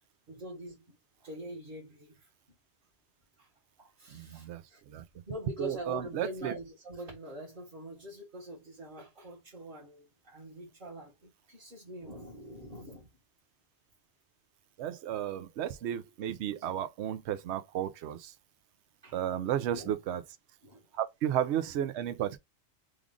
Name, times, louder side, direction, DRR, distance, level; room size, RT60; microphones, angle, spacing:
voice 1, 0.3-2.3 3.4-3.5 3.8-4.8 5.3-13.1 19.0-19.2 19.7-19.9 20.6-20.9, right 1 dB, 50° right, 1.4 m, -44 dB
voice 2, 4.1-5.0 5.6-6.5 14.8-18.3 19.1-20.2 20.9-22.4, right 10 dB, 75° right, 0.8 m, -33 dB
3.2 x 2.4 x 3.6 m
omnidirectional pair, 1.2 m